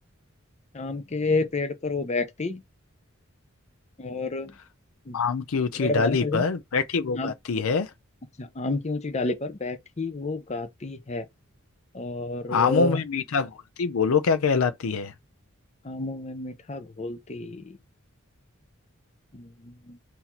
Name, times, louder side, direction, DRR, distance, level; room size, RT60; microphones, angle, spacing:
voice 1, 0.7-2.6 4.0-4.5 5.1-5.2 5.7-6.5 7.1-7.3 8.4-11.3 11.9-13.0 15.8-17.8 19.3-20.0, left 3 dB, 30° left, 0.6 m, -30 dB
voice 2, 5.1-7.9 12.5-13.5 13.8-15.1, left 5 dB, 85° left, 0.5 m, -24 dB
4.0 x 2.7 x 4.3 m
head